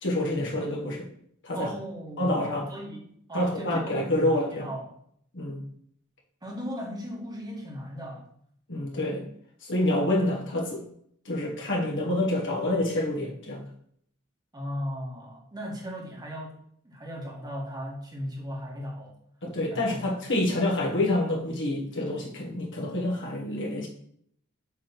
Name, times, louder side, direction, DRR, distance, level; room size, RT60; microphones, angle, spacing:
voice 1, 0.0-1.1 1.4-1.7 2.2-2.6 3.3-4.7 5.3-5.6 8.7-9.2 9.6-10.8 11.2-13.6 19.4-23.9, left 1 dB, 60° left, -1 dB, 1.7 m, -27 dB
voice 2, 1.5-4.9 6.4-8.2 14.5-16.6 16.8-19.1 19.7-20.1, equal, 20° right, -2 dB, 1.9 m, -37 dB
7.4 x 3.7 x 6.0 m, 0.68 s
head